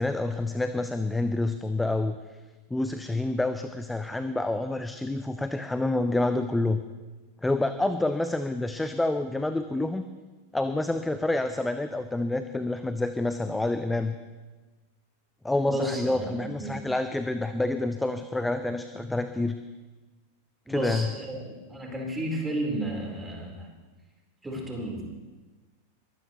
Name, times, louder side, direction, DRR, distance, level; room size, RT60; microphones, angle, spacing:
voice 1, 0.0-2.1 2.7-6.8 7.4-10.1 10.5-14.1 15.4-19.6 20.7-21.1, left 2 dB, 5° left, 10 dB, 0.6 m, -28 dB
voice 2, 15.7-16.8 20.7-23.7 24.4-25.1, right 1 dB, 10° right, -1 dB, 4.0 m, -32 dB
22.5 x 16.5 x 3.1 m, 1.2 s
figure-of-eight pair, 90°, 0 cm